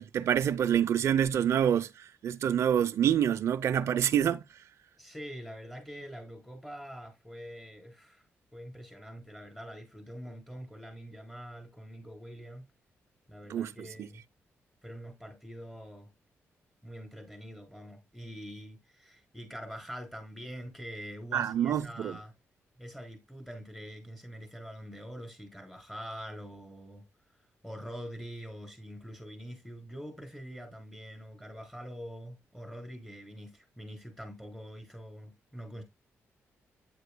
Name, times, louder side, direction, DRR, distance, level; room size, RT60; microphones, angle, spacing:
voice 1, 0.0-1.9 2.2-4.4 13.5-13.7 14.0-14.1 21.3-22.2, right 9 dB, 70° right, 0.7 m, -26 dB
voice 2, 5.0-8.2 8.5-12.6 13.3-14.2 14.8-16.1 16.8-22.3 22.8-27.1 27.6-35.8, equal, 5° left, 4.1 m, -44 dB
9.5 x 8.0 x 2.2 m
cardioid pair, 115°, 5 cm